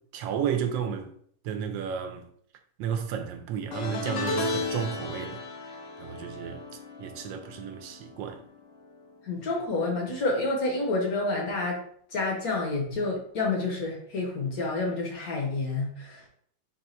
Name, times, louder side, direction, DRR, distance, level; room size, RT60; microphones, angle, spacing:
voice 1, 0.1-1.1 1.4-2.2 2.8-5.4 6.0-6.6 7.0-8.4, right 8 dB, 85° right, 1.3 m, -32 dB
sound 1, 3.7-9.1 9.4-9.8 11.0-11.1, left 3 dB, 80° left, 1.4 m, -35 dB
voice 2, 9.2-11.8 12.1-16.3, left 3 dB, 60° left, 1.1 m, -29 dB
3.9 x 2.2 x 4.2 m
omnidirectional pair, 2.0 m